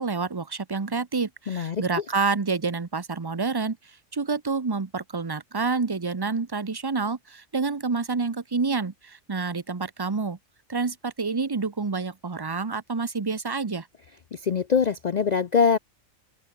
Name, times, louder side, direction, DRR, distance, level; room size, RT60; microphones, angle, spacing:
voice 1, 0.0-3.8 4.1-10.4 10.7-13.9, right 4 dB, 20° right, 0.7 m, -28 dB
voice 2, 1.5-2.0 14.3-15.8, left 6 dB, 60° left, 0.4 m, -23 dB
open air
omnidirectional pair, 1.4 m